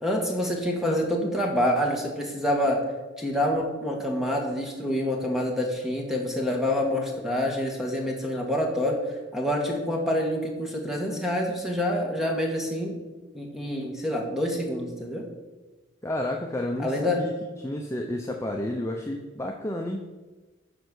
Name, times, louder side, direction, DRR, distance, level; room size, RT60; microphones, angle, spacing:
voice 1, 0.0-2.8 3.2-9.0 9.3-13.0 13.3-15.3 16.8-17.2, left 1 dB, ahead, 0 dB, 1.7 m, -27 dB
voice 2, 16.0-17.3 17.6-20.1, left 1 dB, 15° left, 1 dB, 0.7 m, -31 dB
12.0 x 4.6 x 6.3 m, 1.2 s
head